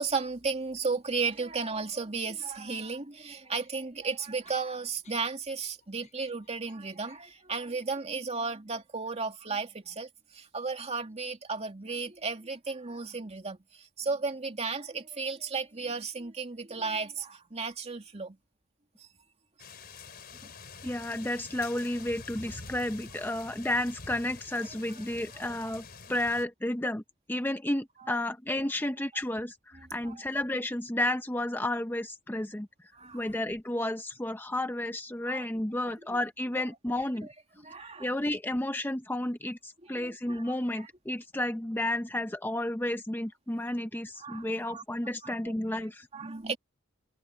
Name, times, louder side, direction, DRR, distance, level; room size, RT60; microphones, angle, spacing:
voice 1, 0.0-18.4 19.0-19.1 20.4-20.5 25.3-25.4 28.0-28.2 29.7-30.2 32.9-33.3 35.2-35.4 35.8-35.9 36.9-37.0 37.6-38.1 39.8-40.4 40.7-40.9 44.2-44.8 45.2-45.5 46.1-46.6, right 4 dB, 35° right, 2.5 m, -34 dB
sound 1, 3.2-8.2, left 7 dB, 35° left, 6.8 m, -62 dB
sound 2, 19.6-26.5, left 4 dB, 50° left, 3.8 m, -47 dB
voice 2, 20.8-27.0 27.3-32.7 33.1-37.3 37.8-46.1, left 1 dB, 10° left, 0.7 m, -32 dB
head